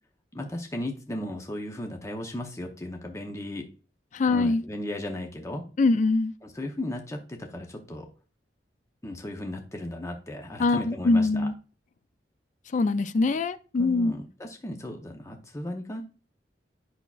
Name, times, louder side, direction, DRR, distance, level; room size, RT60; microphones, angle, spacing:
voice 1, 0.3-3.7 4.3-5.7 6.4-8.1 9.0-11.5 13.8-16.0, left 1 dB, 20° left, 0.8 m, -36 dB
voice 2, 4.1-4.6 5.8-6.3 10.6-11.5 12.7-14.1, left 3 dB, 45° left, 0.4 m, -23 dB
8.3 x 5.7 x 2.4 m
head